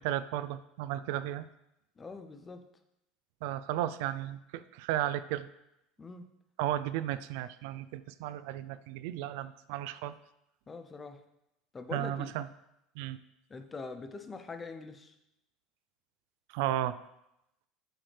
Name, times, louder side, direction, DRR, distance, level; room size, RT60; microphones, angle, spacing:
voice 1, 0.0-1.5 3.4-5.5 6.6-10.1 11.9-12.5 13.0-13.2 16.5-17.0, right 13 dB, 70° right, 14 dB, 0.4 m, -34 dB
voice 2, 2.0-2.6 6.0-6.3 10.7-11.2 11.7-12.3 13.5-15.1, left 4 dB, 15° left, 8 dB, 0.5 m, -43 dB
7.6 x 6.4 x 3.3 m, 0.85 s
cardioid pair, 170°, 0 cm